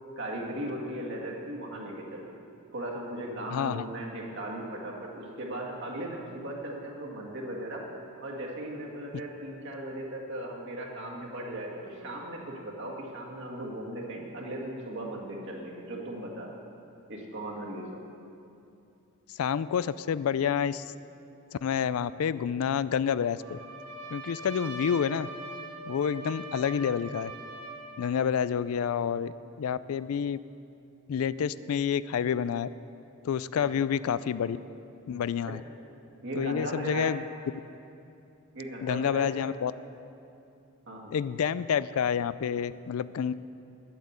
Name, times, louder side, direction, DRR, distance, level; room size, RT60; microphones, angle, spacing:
voice 1, 0.2-2.3 2.7-7.9 8.2-16.6 17.1-18.0 33.5-33.6 35.5-35.6 36.2-37.1 38.5-39.3 40.9-41.1, right 1 dB, 55° right, -2 dB, 1.8 m, -37 dB
voice 2, 3.5-3.8 19.3-20.9 21.6-23.6 24.1-25.3 25.9-27.3 28.0-30.4 31.1-32.7 33.2-34.6 35.1-35.6 36.3-37.2 38.8-39.7 41.1-43.3, left 7 dB, 75° left, 17 dB, 0.3 m, -28 dB
Trumpet, 23.4-28.2, right 2 dB, 90° right, 1.7 m, -42 dB
10.5 x 8.6 x 8.0 m, 2.7 s
head